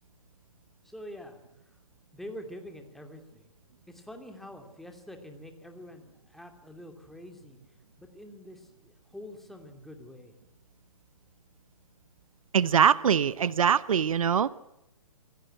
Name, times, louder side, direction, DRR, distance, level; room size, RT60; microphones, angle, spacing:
voice 1, 0.8-1.4 2.1-3.5 3.9-7.6 8.0-10.3, left 1 dB, ahead, 2.7 m, -46 dB
voice 2, 12.5-14.5, right 7 dB, 70° right, 0.8 m, -23 dB
26.5 x 16.5 x 8.9 m
hypercardioid pair, 130°, 18 cm